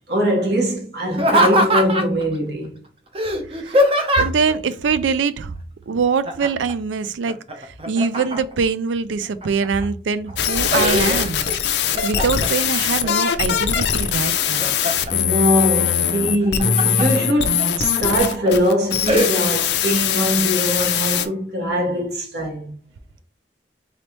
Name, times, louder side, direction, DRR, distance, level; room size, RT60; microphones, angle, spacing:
voice 1, 0.1-2.8 15.1-22.7, equal, 65° right, 1.4 m, -22 dB
Laughter, 1.1-2.2 3.1-4.5 6.2-6.7 7.0-8.6 9.2-9.8 10.3-11.5 11.9-12.5 13.0-13.8 14.2-15.1 16.3-17.1 17.6-17.7 18.2-18.5 19.1-19.3, equal, 30° right, 0.6 m, -21 dB
voice 2, 4.2-5.5 5.9-11.4 12.0-14.7, right 5 dB, 90° right, 0.4 m, -23 dB
sound 1, 10.4-21.3, left 8 dB, 70° left, 0.4 m, -21 dB
4.0 x 3.3 x 3.0 m
head